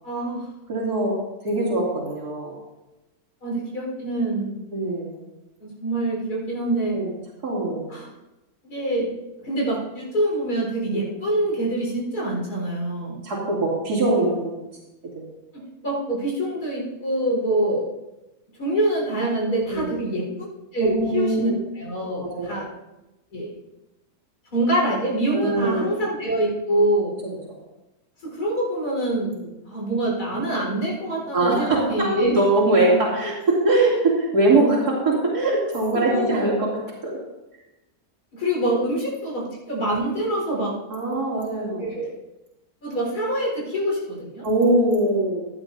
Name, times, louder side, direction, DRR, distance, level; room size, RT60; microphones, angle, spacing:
voice 1, 0.0-0.5 3.4-4.5 5.6-7.0 7.9-8.1 8.6-9.1 9.4-13.2 15.5-17.9 18.6-20.4 20.7-22.7 23.3-23.5 24.5-27.1 28.2-29.3 29.6-32.3 35.9-36.5 38.3-40.8 41.8-42.1 42.8-44.5, right 1 dB, 85° left, -4 dB, 4.9 m, -25 dB
voice 2, 0.7-1.1 1.4-2.5 4.7-5.2 6.9-7.1 7.4-7.8 10.9-11.0 13.0-14.6 15.1-15.2 19.7-19.9 20.8-21.6 22.2-22.6 25.3-25.9 31.3-36.7 37.0-37.2 40.9-41.9 44.4-45.5, right 2 dB, 85° right, -5 dB, 3.3 m, -22 dB
16.5 x 11.0 x 2.7 m, 1.0 s
omnidirectional pair, 1.6 m